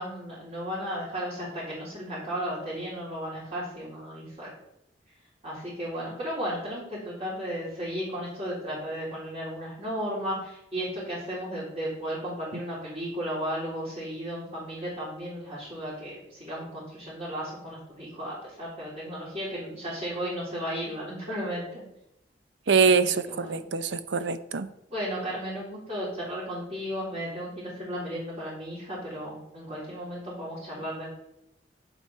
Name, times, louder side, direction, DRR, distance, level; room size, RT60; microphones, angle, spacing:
voice 1, 0.0-4.5 5.4-21.8 22.9-23.6 24.9-31.1, equal, 40° right, -10 dB, 4.0 m, -34 dB
voice 2, 22.7-24.7, right 5 dB, 80° right, 13 dB, 0.6 m, -24 dB
8.2 x 8.1 x 4.2 m, 0.80 s
head